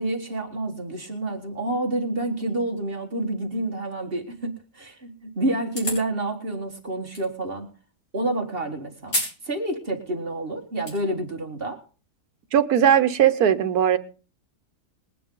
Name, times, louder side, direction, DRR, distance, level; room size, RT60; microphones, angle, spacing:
voice 1, 0.0-7.7 8.1-11.8, right 1 dB, 40° right, 2.2 m, -29 dB
sound 1, 5.7-6.1 7.1-7.3 9.1-9.4 9.8-9.9 10.6-10.9, equal, 65° left, 5.9 m, -28 dB
voice 2, 12.5-14.0, right 9 dB, 80° right, 1.5 m, -18 dB
21.0 x 9.2 x 3.9 m
omnidirectional pair, 1.6 m